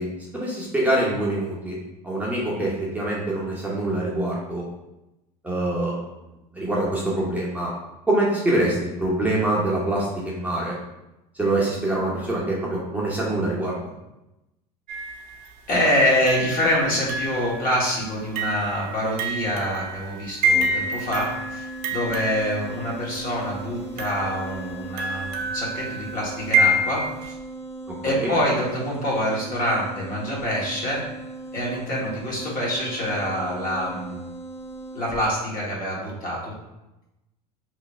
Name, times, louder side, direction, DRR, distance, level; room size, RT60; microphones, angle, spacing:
voice 1, 0.0-1.8 2.0-4.6 5.4-6.0 6.5-7.7 8.1-10.7 11.3-13.8 27.9-28.3, right 1 dB, 5° right, -6 dB, 0.8 m, -25 dB
sound 1, 14.9-15.5 16.3-23.2 24.0-27.3, right 1 dB, 70° right, 0.6 m, -28 dB
voice 2, 15.7-27.3 28.0-31.0 31.5-34.2 34.9-36.5, equal, 45° left, -4 dB, 1.3 m, -25 dB
sound 2, 20.5-35.3, right 2 dB, 15° left, 0.4 m, -38 dB
3.1 x 2.2 x 4.1 m, 0.95 s
hypercardioid pair, 90°, 20 cm